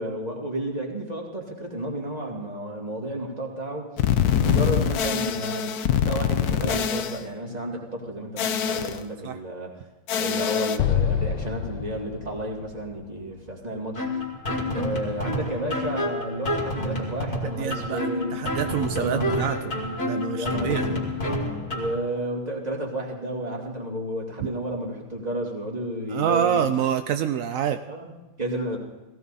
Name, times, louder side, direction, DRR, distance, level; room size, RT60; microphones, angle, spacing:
voice 1, 0.0-3.9 4.3-9.7 10.1-14.1 14.7-18.4 18.9-19.7 20.3-21.0 21.7-26.7 27.9-28.8, right 1 dB, 20° right, 0 dB, 2.5 m, -32 dB
sound 1, 4.0-7.2 8.4-9.0 10.1-10.8, left 8 dB, 65° left, 1.1 m, -24 dB
Explosion, 10.8-14.1, left 8 dB, 85° left, 1.4 m, -28 dB
sound 2, 14.0-22.0, left 1 dB, 30° left, 2.8 m, -29 dB
voice 2, 17.4-19.6 20.0-20.8 26.1-27.8, right 9 dB, 75° right, 9 dB, 0.7 m, -26 dB
17.5 x 16.0 x 4.1 m, 1.1 s
omnidirectional pair, 2.1 m